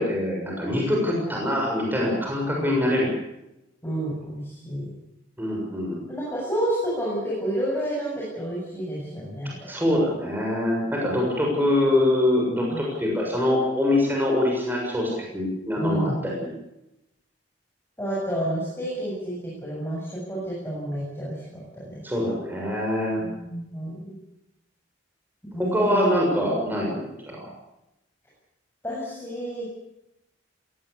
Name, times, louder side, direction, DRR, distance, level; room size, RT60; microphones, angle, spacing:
voice 1, 0.0-3.1 5.4-6.0 9.7-16.5 22.0-23.2 25.6-27.4, left 1 dB, 10° right, -2 dB, 7.0 m, -24 dB
voice 2, 3.8-4.9 6.1-9.7 12.7-12.9 15.8-16.2 18.0-22.0 23.2-24.1 25.5-26.1 28.8-29.6, right 1 dB, 10° left, -6 dB, 7.6 m, -30 dB
21.5 x 19.0 x 8.4 m, 0.88 s
head